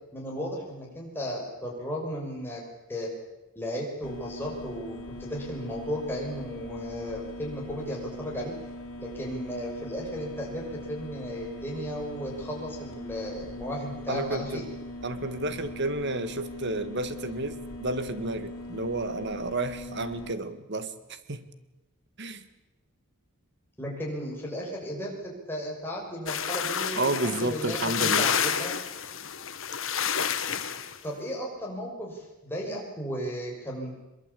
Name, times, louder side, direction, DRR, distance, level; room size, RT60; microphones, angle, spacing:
voice 1, 0.1-2.6 2.9-3.1 3.5-8.5 9.0-14.6 23.8-28.8 30.5-30.6 31.0-33.9, equal, 10° left, -3 dB, 6.3 m, -35 dB
sound 1, 4.0-20.3, left 1 dB, 75° left, 3.3 m, -41 dB
voice 2, 14.1-14.7 15.0-21.4 22.2-22.4 27.0-28.3, right 2 dB, 50° right, 12 dB, 1.8 m, -31 dB
sound 2, 26.3-31.0, left 8 dB, 60° left, 1.7 m, -29 dB
23.0 x 22.5 x 8.5 m, 0.98 s
head